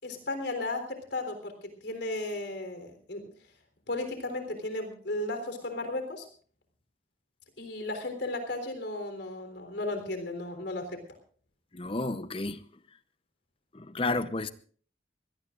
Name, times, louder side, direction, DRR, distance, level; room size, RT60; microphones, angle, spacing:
voice 1, 0.0-3.3 3.9-6.3 7.6-11.0, left 2 dB, 75° left, 3.7 m, -35 dB
voice 2, 11.7-12.6 13.7-14.5, left 2 dB, 30° left, 0.8 m, -31 dB
23.5 x 17.5 x 2.5 m
head